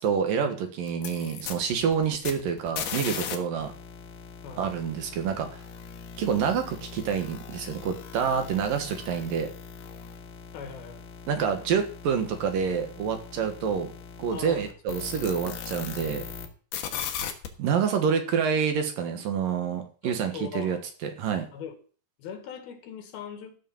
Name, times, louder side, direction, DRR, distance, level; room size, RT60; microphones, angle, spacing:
voice 1, 0.0-3.7 4.6-5.6 6.2-9.5 11.3-13.9 14.2-16.2 17.6-20.8 21.0-21.5, right 7 dB, 65° right, 6 dB, 3.1 m, -27 dB
sound 1, 0.9-3.4 3.6-16.5 16.7-17.5, left 8 dB, 85° left, 3.5 m, -39 dB
voice 2, 10.5-11.1 14.3-14.7 20.0-20.8 21.5-21.7 22.2-23.6, left 7 dB, 70° left, 7 dB, 3.7 m, -40 dB
14.0 x 6.7 x 7.3 m, 0.41 s
omnidirectional pair, 4.5 m